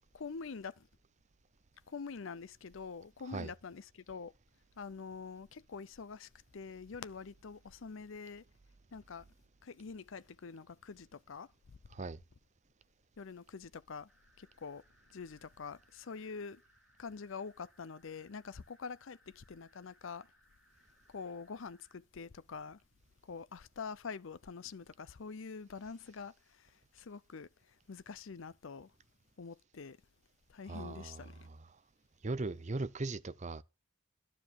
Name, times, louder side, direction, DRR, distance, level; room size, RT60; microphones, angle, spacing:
voice 1, 0.1-0.9 1.9-4.3 4.8-8.4 8.9-9.3 9.6-11.8 13.2-14.1 14.4-14.8 15.1-16.6 17.0-20.3 21.1-22.8 23.2-28.9 29.4-30.0 30.5-31.5, left 5 dB, 65° left, 0.6 m, -46 dB
sound 1, 14.1-22.0, equal, ahead, 5.9 m, -69 dB
voice 2, 30.7-31.7 32.2-33.6, right 3 dB, 35° right, 0.6 m, -39 dB
11.5 x 7.3 x 7.3 m
head